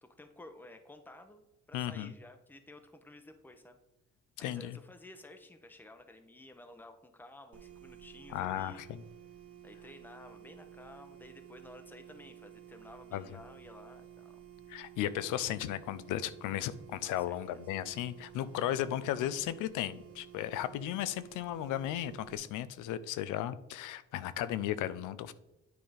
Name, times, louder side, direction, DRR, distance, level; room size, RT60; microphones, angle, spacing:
voice 1, 0.0-3.8 4.4-8.8 9.6-14.4 17.0-17.6, left 1 dB, 5° left, 7 dB, 0.8 m, -53 dB
voice 2, 1.7-2.1 4.4-4.8 8.3-9.0 13.1-13.2 14.7-25.3, left 12 dB, 90° left, 15 dB, 0.5 m, -35 dB
sound 1, 7.5-22.4, right 10 dB, 50° right, 1.0 m, -53 dB
9.5 x 3.8 x 5.0 m, 0.99 s
cardioid pair, 90°, 30 cm